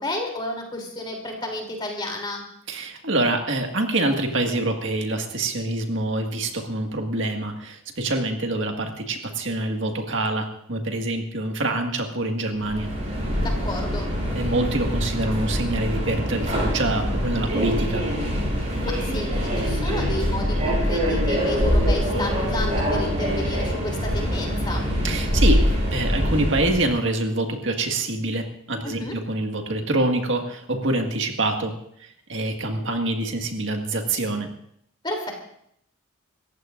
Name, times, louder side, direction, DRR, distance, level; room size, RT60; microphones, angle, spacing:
voice 1, 0.0-2.4 13.4-14.1 18.6-24.9 28.8-29.1 35.0-35.3, left 1 dB, 20° left, 2 dB, 3.2 m, -31 dB
voice 2, 2.7-12.9 14.4-18.0 25.0-25.6 25.9-31.7 32.3-34.5, right 2 dB, 65° right, 3 dB, 1.9 m, -25 dB
Subway metro underground, 12.5-26.9, equal, 35° right, 7.8 m, -24 dB
27.5 x 14.5 x 2.6 m, 0.71 s
head